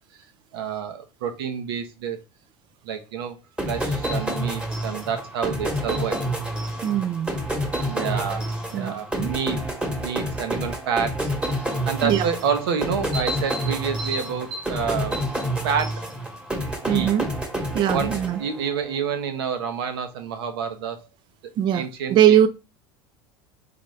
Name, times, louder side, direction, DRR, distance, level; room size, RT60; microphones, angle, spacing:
voice 1, 0.5-2.2 2.8-3.4 3.6-6.2 7.8-9.6 10.0-11.3 11.6-15.2 15.6-16.0 16.8-17.1 17.9-21.0 21.7-22.5, right 6 dB, 85° right, 1.0 m, -28 dB
sound 1, 3.6-18.9, equal, 5° right, 1.3 m, -28 dB
voice 2, 6.8-7.3 8.7-9.3 12.0-12.2 16.9-17.2 17.7-18.4 21.6-22.5, right 10 dB, 40° right, 0.4 m, -21 dB
4.1 x 3.9 x 3.2 m
supercardioid pair, 110°, 12 cm